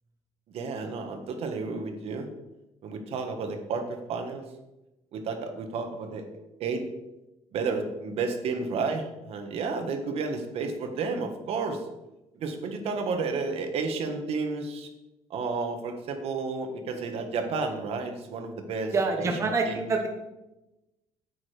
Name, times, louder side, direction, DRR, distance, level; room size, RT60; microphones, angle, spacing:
voice 1, 0.5-2.3 2.8-4.4 5.1-6.3 6.6-6.8 7.5-11.9 12.3-14.9 15.3-19.3 19.7-19.9, right 4 dB, 60° right, 5 dB, 1.5 m, -31 dB
voice 2, 18.9-20.1, right 3 dB, 25° right, 2 dB, 1.1 m, -26 dB
9.0 x 8.6 x 5.0 m, 0.98 s
cardioid pair, 155°, 12 cm